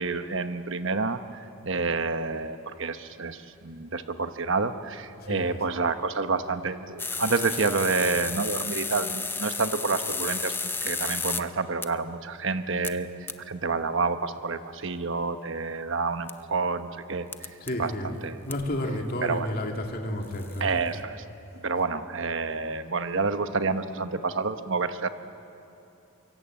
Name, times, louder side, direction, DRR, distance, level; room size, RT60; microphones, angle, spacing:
voice 1, 0.0-17.3 17.8-17.9 18.2-18.4 19.2-19.5 20.6-21.2 21.6-25.1, right 4 dB, 60° right, 9 dB, 1.1 m, -29 dB
voice 2, 5.2-5.6 17.6-20.8 21.8-21.9, left 1 dB, 45° left, 2 dB, 2.5 m, -32 dB
sound 1, 7.0-11.4 11.8-11.9 12.8-12.9 13.3-13.4 16.3-16.4 17.3-17.7 18.5-18.6 20.2-20.6, left 4 dB, 10° left, 0.7 m, -32 dB
23.5 x 23.5 x 8.7 m, 2.9 s
head